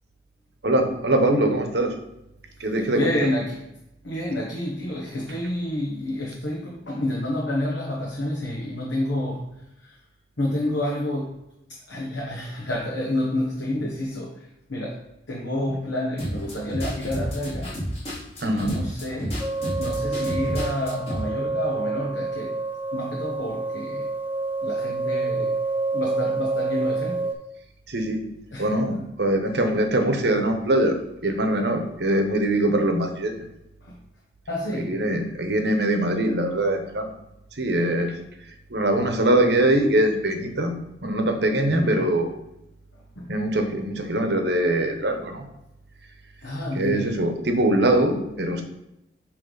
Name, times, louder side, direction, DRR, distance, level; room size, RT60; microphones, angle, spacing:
voice 1, 0.6-1.9 2.6-3.3 5.3-5.4 18.4-18.8 27.9-28.3 28.6-31.0 31.2-33.4 34.7-37.1 37.5-38.2 38.7-42.3 43.3-45.5 46.7-48.6, right 1 dB, 60° right, 5 dB, 0.9 m, -22 dB
voice 2, 2.6-3.7 4.0-10.0 10.4-11.4 11.7-15.0 15.3-17.8 18.4-19.4 19.8-22.6 22.9-24.1 24.6-25.5 25.9-27.3 28.5-28.7 33.8-34.0 34.5-35.0 41.7-41.9 42.9-43.3 46.4-47.1, left 1 dB, 70° left, -3 dB, 1.1 m, -29 dB
sound 1, 16.2-21.2, equal, 30° left, 2.0 m, -31 dB
sound 2, 19.4-27.3, right 3 dB, 10° right, 0.4 m, -28 dB
8.4 x 3.2 x 4.0 m, 0.85 s
head